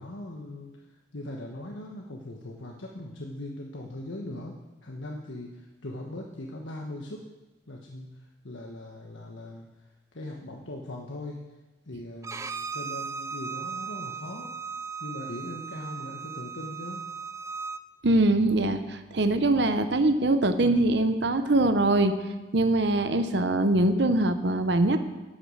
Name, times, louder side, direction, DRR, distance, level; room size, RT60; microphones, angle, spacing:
voice 1, 0.0-7.2 7.7-9.7 10.1-11.4 11.8-14.5 15.0-17.1, left 1 dB, 80° left, 0 dB, 1.3 m, -40 dB
Bowed string instrument, 12.2-17.8, right 6 dB, 15° right, 0.3 m, -37 dB
voice 2, 18.0-22.1 22.5-25.0, right 2 dB, 60° right, 9 dB, 0.9 m, -23 dB
11.5 x 8.5 x 6.4 m, 1.1 s
head